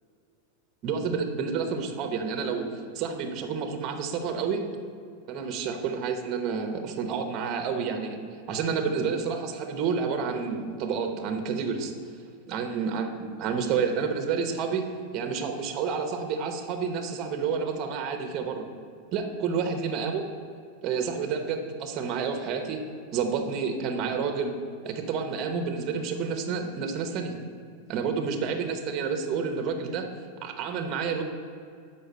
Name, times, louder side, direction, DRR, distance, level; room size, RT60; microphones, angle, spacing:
voice 1, 0.8-2.7 2.9-4.6 5.3-8.2 8.5-11.9 12.5-18.7 19.1-20.3 20.8-22.8 23.1-24.5 24.8-27.4 27.9-30.1 30.4-31.2, right 5 dB, 30° right, 5 dB, 0.8 m, -29 dB
6.3 x 5.5 x 6.7 m, 2.3 s
supercardioid pair, 170°, 0 cm